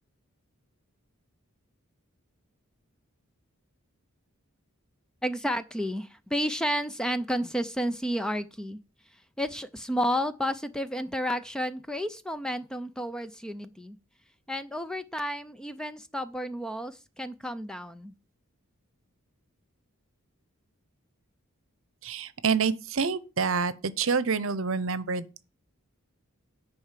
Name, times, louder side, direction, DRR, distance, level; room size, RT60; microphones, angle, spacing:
voice 1, 5.2-8.8 9.1-14.0 14.5-18.1, equal, 5° left, 0.4 m, -31 dB
voice 2, 22.0-25.4, right 5 dB, 65° right, 0.8 m, -27 dB
9.9 x 4.6 x 7.4 m
head